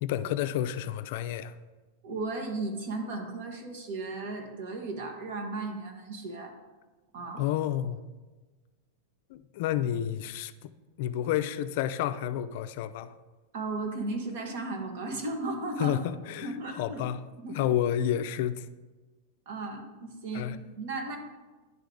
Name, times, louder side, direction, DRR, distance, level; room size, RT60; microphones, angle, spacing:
voice 1, 0.0-1.5 7.3-8.0 9.3-10.5 11.0-13.1 15.8-17.2 17.5-18.7 20.3-20.6, left 11 dB, 60° left, 0.3 m, -30 dB
voice 2, 2.0-6.5 7.1-7.4 13.5-16.0 16.4-17.0 17.4-17.7 19.5-21.2, right 2 dB, 65° right, 1.3 m, -35 dB
10.5 x 3.4 x 3.8 m
supercardioid pair, 135°, 0 cm